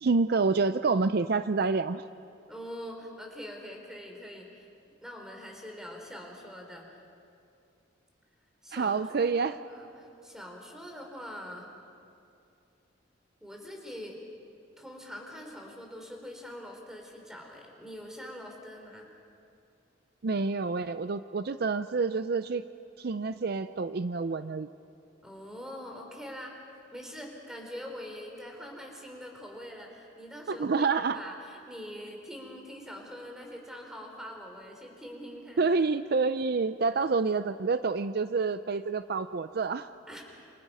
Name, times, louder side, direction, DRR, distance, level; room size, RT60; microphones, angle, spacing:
voice 1, 0.0-2.0 8.7-9.6 20.2-22.6 23.0-24.7 30.5-31.2 35.6-39.9, right 4 dB, 55° right, 12 dB, 0.5 m, -28 dB
voice 2, 2.5-4.7 5.0-7.0 8.6-11.7 13.4-14.2 14.8-19.1 25.2-26.5 26.9-35.6 40.1-40.2, equal, 5° right, 1 dB, 3.6 m, -44 dB
28.0 x 27.5 x 5.5 m, 2.6 s
head